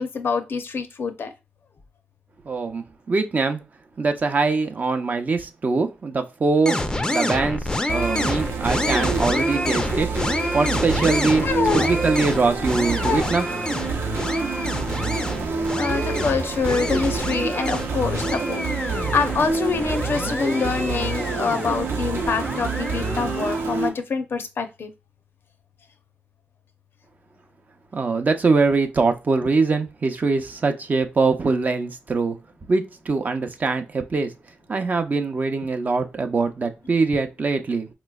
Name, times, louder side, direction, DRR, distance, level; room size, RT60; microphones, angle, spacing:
voice 1, 0.0-1.3 9.3-9.4 11.4-11.9 13.0-13.3 15.8-24.9, left 5 dB, 65° left, 0.6 m, -26 dB
voice 2, 2.4-3.6 4.0-6.8 7.1-10.1 10.5-11.5 11.7-13.5 27.9-32.4 32.7-34.3 34.7-37.9, right 4 dB, 45° right, 0.6 m, -22 dB
sound 1, 6.6-23.6, left 1 dB, 15° left, 0.5 m, -28 dB
sound 2, 7.9-23.9, right 4 dB, 80° right, 0.8 m, -27 dB
4.1 x 3.0 x 2.3 m
cardioid pair, 85°, 4 cm